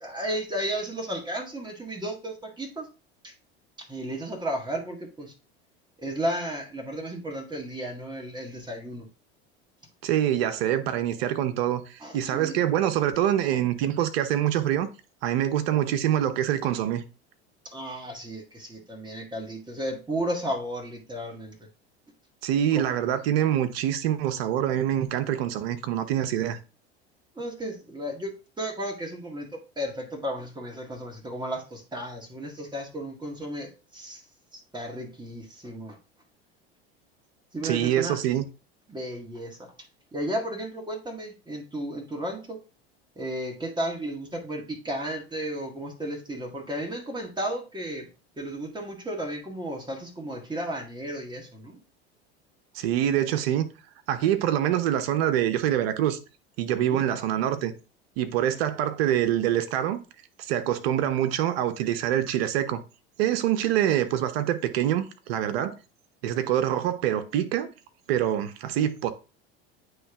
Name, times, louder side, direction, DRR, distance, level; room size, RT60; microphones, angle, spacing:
voice 1, 0.0-2.9 3.2-3.3 3.8-5.3 6.0-9.1 12.0-12.6 13.4-13.5 17.6-21.6 22.8-22.9 27.4-34.2 34.5-36.0 37.5-38.2 38.9-39.7 40.1-42.6 43.2-48.1 48.4-51.8 56.6-57.1, right 1 dB, 15° right, 1.9 m, -34 dB
voice 2, 10.0-14.9 15.2-17.0 22.4-26.6 37.6-38.5 52.7-53.7 54.1-56.2 56.6-57.7 58.2-60.0 60.4-62.8 63.2-65.8 66.2-67.7 68.1-69.1, right 11 dB, 70° right, 1.0 m, -25 dB
9.2 x 3.3 x 3.6 m
hypercardioid pair, 85°, 31 cm